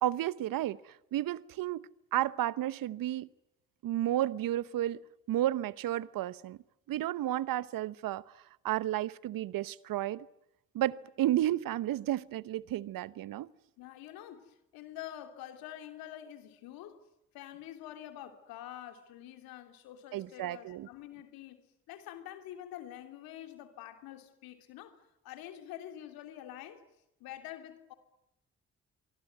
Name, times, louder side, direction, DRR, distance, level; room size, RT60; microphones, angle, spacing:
voice 1, 0.0-3.3 3.8-5.0 5.3-6.6 6.9-8.2 8.6-10.3 10.7-13.5 20.1-20.9, right 13 dB, 70° right, 1.0 m, -32 dB
voice 2, 13.8-17.0 17.3-26.8 27.2-27.9, left 12 dB, 80° left, 3.1 m, -47 dB
25.0 x 24.5 x 9.4 m
hypercardioid pair, 45°, 35 cm